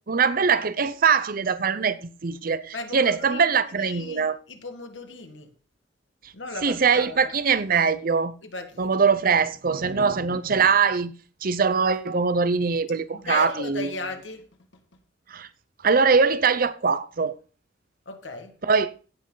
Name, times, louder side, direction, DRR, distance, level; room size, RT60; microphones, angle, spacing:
voice 1, 0.1-4.4 6.6-8.3 8.8-11.1 11.4-13.9 15.3-15.5 15.8-17.3 18.7-18.9, right 5 dB, 50° right, 0.7 m, -22 dB
voice 2, 2.7-5.5 6.3-7.4 8.4-9.1 13.1-15.0 18.1-18.6, left 3 dB, 85° left, 1.8 m, -37 dB
16.5 x 6.2 x 3.9 m
head